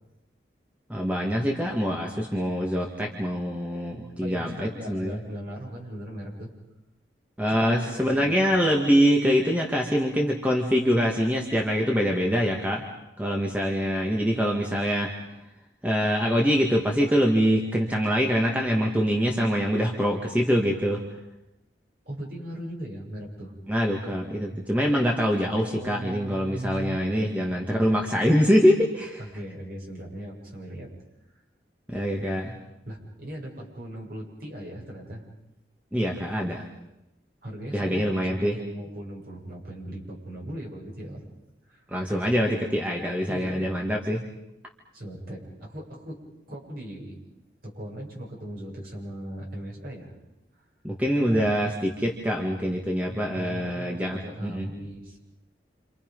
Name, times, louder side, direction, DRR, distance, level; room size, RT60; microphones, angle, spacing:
voice 1, 0.9-5.2 7.4-12.8 13.2-15.1 15.8-21.0 23.7-29.2 31.9-32.5 35.9-36.6 37.7-38.6 41.9-44.2 50.8-54.7, equal, 10° right, 0 dB, 2.0 m, -24 dB
voice 2, 4.2-6.5 7.5-8.5 22.1-23.5 25.4-27.4 29.2-30.9 32.9-35.2 37.4-41.2 41.7-41.8 43.3-43.7 44.9-47.2 47.6-50.1 50.5-50.6 51.2-51.6 53.3-55.2, right 1 dB, 50° right, -1 dB, 7.7 m, -38 dB
29.0 x 27.5 x 5.5 m, 0.89 s
head